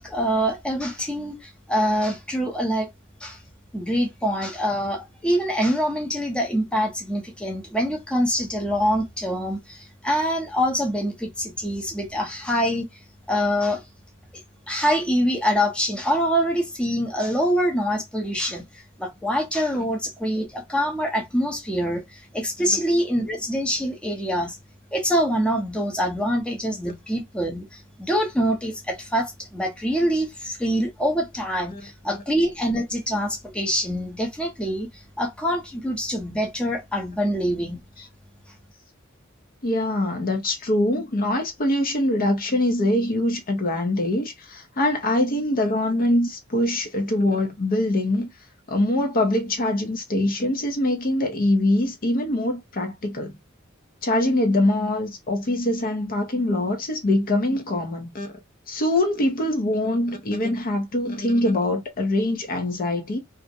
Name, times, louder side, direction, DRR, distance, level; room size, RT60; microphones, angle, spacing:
voice 1, 0.0-2.9 3.2-3.4 3.7-12.9 13.3-13.8 14.7-18.6 19.0-24.6 24.9-34.9 35.2-37.8, equal, 5° left, 0.6 m, -25 dB
voice 2, 39.6-48.3 48.7-53.3 54.0-58.3 58.7-63.2, left 1 dB, 45° left, 0.6 m, -23 dB
2.4 x 2.0 x 2.5 m
head